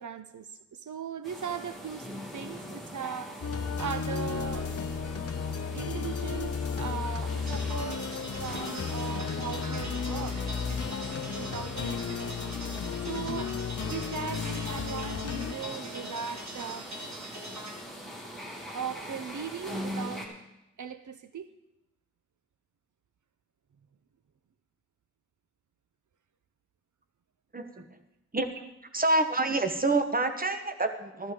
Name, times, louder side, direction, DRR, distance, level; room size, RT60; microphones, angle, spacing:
voice 1, 0.0-5.0 5.7-8.1 8.4-10.4 10.7-10.8 11.4-13.6 13.8-16.9 18.7-20.3 20.8-21.5, right 7 dB, 85° right, 11 dB, 0.6 m, -39 dB
sound 1, 1.2-20.3, equal, ahead, 2.5 m, -42 dB
sound 2, 3.4-15.5, left 6 dB, 55° left, 0.5 m, -34 dB
sound 3, 7.5-17.7, right 1 dB, 65° right, 2.0 m, -43 dB
voice 2, 27.5-28.0 28.3-28.5 28.9-31.3, right 2 dB, 30° right, 7 dB, 1.0 m, -27 dB
14.0 x 12.5 x 3.7 m, 0.90 s
wide cardioid pair, 70°, 29 cm